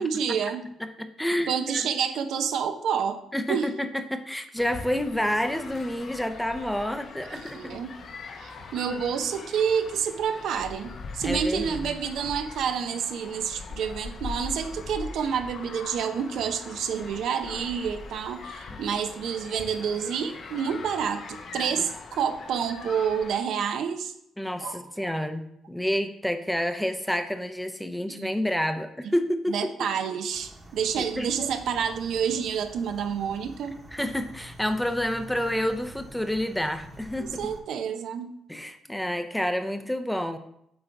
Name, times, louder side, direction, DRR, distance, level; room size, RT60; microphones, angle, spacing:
voice 1, 0.0-0.7 1.5-3.2 3.5-3.7 7.3-8.0 8.4-24.1 24.6-25.1 28.1-28.3 29.0-29.1 29.5-33.8 37.2-38.3, right 7 dB, 75° right, 7 dB, 0.6 m, -29 dB
voice 2, 0.8-1.9 3.3-7.8 11.2-11.8 24.4-29.7 30.9-31.3 33.9-37.4 38.5-40.4, left 1 dB, 5° left, 8 dB, 0.6 m, -29 dB
sound 1, 4.6-23.4, left 4 dB, 55° left, 0.8 m, -41 dB
sound 2, 30.3-37.6, right 1 dB, 25° right, 1.1 m, -47 dB
7.9 x 3.9 x 4.5 m, 0.74 s
cardioid pair, 90°, 0 cm